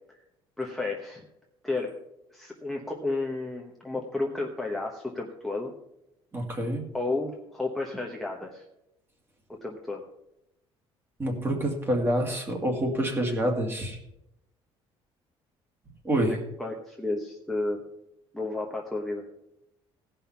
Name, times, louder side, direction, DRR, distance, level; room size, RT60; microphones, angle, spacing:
voice 1, 0.6-1.2 1.6-2.0 2.3-5.7 6.9-8.6 9.6-10.0 16.3-17.8 18.3-19.2, left 2 dB, ahead, -2 dB, 1.0 m, -32 dB
voice 2, 6.3-6.8 11.2-14.0 16.0-16.3, right 1 dB, 20° right, 2 dB, 2.3 m, -27 dB
17.0 x 5.6 x 5.8 m, 0.84 s
cardioid pair, 150°, 10 cm